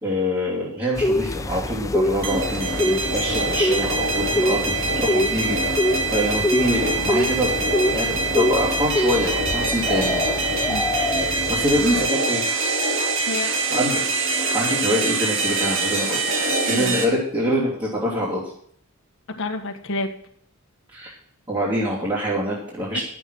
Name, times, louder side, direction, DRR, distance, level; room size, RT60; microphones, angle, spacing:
voice 1, 0.0-4.6 4.9-10.2 11.5-12.5 13.7-14.0 14.5-16.2 16.7-18.5 20.9-21.1 21.5-23.0, equal, 20° right, -7 dB, 2.9 m, -25 dB
sound 1, 1.0-12.1, left 1 dB, 15° left, 0.5 m, -25 dB
sound 2, 2.2-17.0, right 3 dB, 55° right, 2.4 m, -24 dB
voice 2, 13.3-13.6 16.5-17.0 19.3-20.1 22.9-23.0, left 2 dB, 55° left, 3 dB, 1.4 m, -29 dB
12.0 x 7.6 x 6.3 m, 0.65 s
head